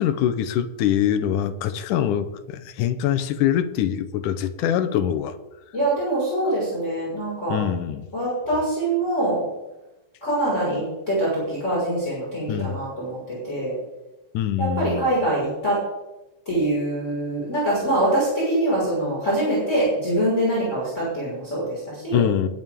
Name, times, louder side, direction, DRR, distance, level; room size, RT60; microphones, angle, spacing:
voice 1, 0.0-5.4 7.5-8.1 12.5-12.8 14.3-15.1 22.1-22.5, left 10 dB, 75° left, 9 dB, 2.3 m, -24 dB
voice 2, 5.7-7.6 8.1-9.4 10.2-13.7 14.6-15.8 16.5-22.3, right 1 dB, 20° left, -8 dB, 5.8 m, -24 dB
21.5 x 9.3 x 3.7 m, 0.99 s
omnidirectional pair, 3.8 m